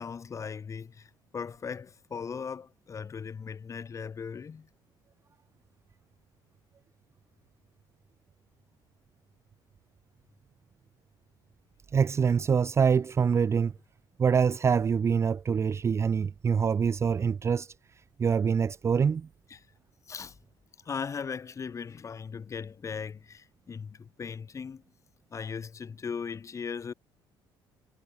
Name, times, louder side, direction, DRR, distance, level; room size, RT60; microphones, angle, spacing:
voice 1, 0.0-4.7 19.5-19.6 20.1-20.4 20.8-24.8 25.3-26.9, left 6 dB, 35° left, 4.1 m, -38 dB
voice 2, 11.9-13.7 14.2-17.7 18.2-19.3, right 6 dB, 30° right, 0.5 m, -25 dB
cardioid pair, 105°, 9 cm